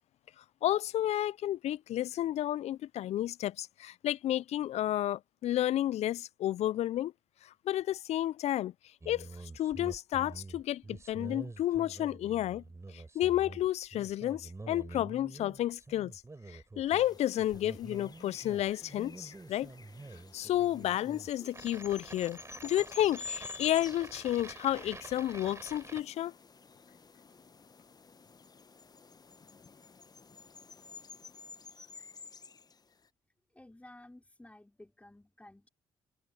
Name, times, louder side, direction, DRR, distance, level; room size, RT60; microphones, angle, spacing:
voice 1, 0.6-7.1 7.7-8.7 9.1-9.3 9.6-12.6 12.9-16.1 16.5-19.7 20.3-26.3, left 13 dB, 60° left, 0.5 m, -31 dB
sound 1, 9.0-26.0, right 3 dB, 25° right, 4.0 m, -47 dB
sound 2, 16.9-33.1, left 4 dB, 30° left, 1.2 m, -50 dB
voice 2, 33.5-35.7, left 1 dB, 10° left, 5.3 m, -54 dB
hypercardioid pair, 55°, 12 cm